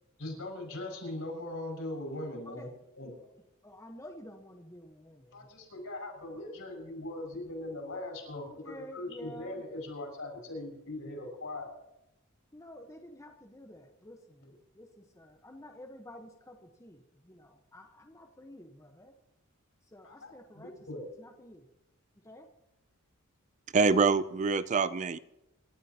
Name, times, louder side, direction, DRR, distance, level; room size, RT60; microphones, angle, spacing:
voice 1, 0.2-2.7 3.0-3.1 5.3-11.7 14.4-14.5 20.0-21.1, left 1 dB, 70° left, 1 dB, 6.5 m, -40 dB
voice 2, 3.6-5.5 8.5-9.6 12.5-19.1 19.9-20.7 21.2-21.7 22.2-22.5 23.9-24.1, left 1 dB, 15° left, 2 dB, 1.2 m, -50 dB
voice 3, 23.7-25.2, right 4 dB, 35° right, 15 dB, 0.4 m, -25 dB
27.0 x 13.0 x 3.0 m, 0.92 s
head